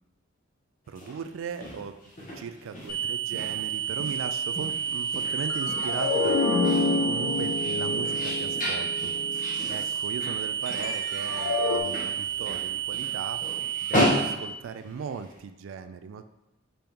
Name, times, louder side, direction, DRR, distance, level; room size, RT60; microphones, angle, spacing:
sound 1, 0.9-15.3, left 1 dB, 40° left, 1.1 m, -34 dB
voice 1, 0.9-2.0 2.3-6.4 7.0-9.1 9.7-13.4 13.8-16.3, right 6 dB, 80° right, 10 dB, 0.3 m, -38 dB
sound 2, 2.9-14.3, right 8 dB, 10° left, 1.2 m, -31 dB
sound 3, 5.4-9.7 10.7-11.8, left 4 dB, 80° left, 0.5 m, -28 dB
5.3 x 2.9 x 3.4 m, 0.96 s
head